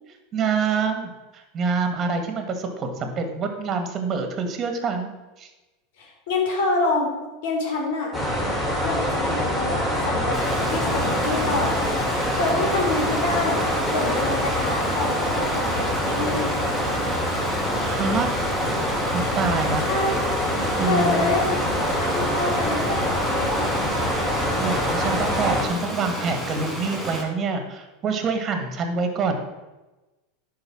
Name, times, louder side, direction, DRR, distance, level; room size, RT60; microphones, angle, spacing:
voice 1, 0.3-5.1 5.4-5.5 12.1-12.7 17.8-18.3 19.1-19.8 20.7-21.4 24.6-29.3, right 4 dB, 35° right, 6 dB, 1.8 m, -26 dB
voice 2, 6.0-7.1 7.4-8.2 8.8-11.9 12.3-13.6 13.9-16.5 19.8-20.3 20.8-23.7, left 2 dB, 70° left, 1 dB, 3.1 m, -27 dB
sound 1, 8.1-25.6, equal, 15° left, 3.3 m, -25 dB
Stream, 10.3-27.2, equal, 10° right, 3.6 m, -32 dB
11.0 x 4.7 x 6.3 m, 1.1 s
hypercardioid pair, 110°, 0 cm